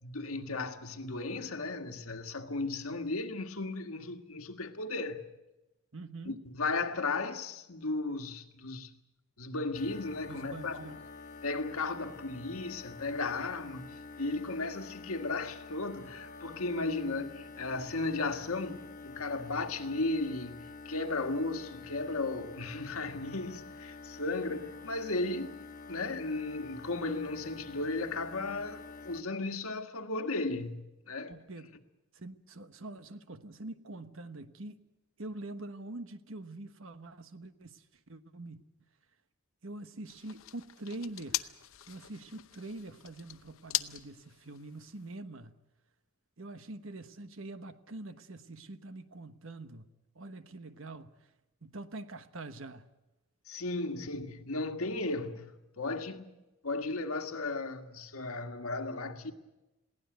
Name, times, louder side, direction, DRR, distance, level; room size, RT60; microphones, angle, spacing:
voice 1, 0.0-5.2 6.3-8.9 9.4-10.8 11.4-13.9 14.2-25.6 25.9-31.3 53.5-59.3, left 3 dB, 90° left, 1.8 m, -35 dB
voice 2, 5.9-6.4 10.3-11.0 31.3-31.8 32.1-34.8 35.2-38.9 39.6-41.5 41.9-45.5 46.4-51.3 51.6-52.9, right 2 dB, 65° right, 1.2 m, -45 dB
sound 1, 9.7-29.2, left 4 dB, 40° left, 1.5 m, -48 dB
sound 2, 40.1-45.2, left 13 dB, 70° left, 0.8 m, -40 dB
22.0 x 17.0 x 9.2 m
head